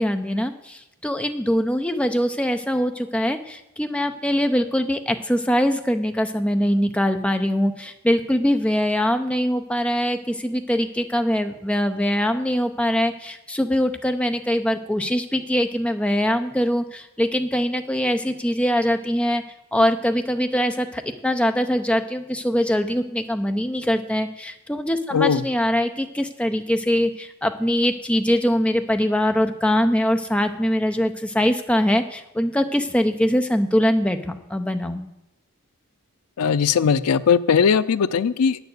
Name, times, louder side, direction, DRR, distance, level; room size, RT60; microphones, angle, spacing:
voice 1, 0.0-19.4 19.7-35.0, equal, 5° left, 6 dB, 0.6 m, -22 dB
voice 2, 25.1-25.4 36.4-38.6, left 6 dB, 90° left, 15 dB, 0.5 m, -19 dB
9.1 x 7.0 x 8.0 m, 0.89 s
head